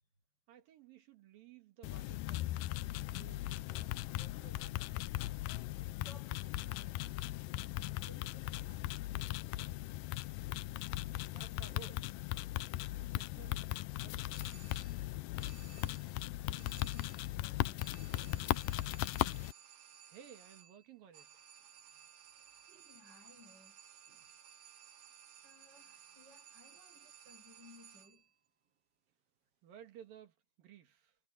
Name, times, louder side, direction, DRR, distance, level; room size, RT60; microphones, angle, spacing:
voice 1, 0.5-4.8 11.2-12.1 13.0-13.7 14.0-14.8 20.1-21.3 29.6-31.2, right 9 dB, 85° right, 3.8 m, -57 dB
sound 1, 1.8-19.5, left 16 dB, 85° left, 2.3 m, -38 dB
voice 2, 6.0-7.1 7.7-9.9 15.9-18.4 21.9-22.0 22.7-23.8 24.1-24.3 25.4-28.3, left 1 dB, 30° right, 6.6 m, -61 dB
sound 2, 14.3-15.1 15.4-16.2 16.6-17.4 17.8-28.3, right 8 dB, 55° right, 1.8 m, -58 dB
omnidirectional pair, 4.0 m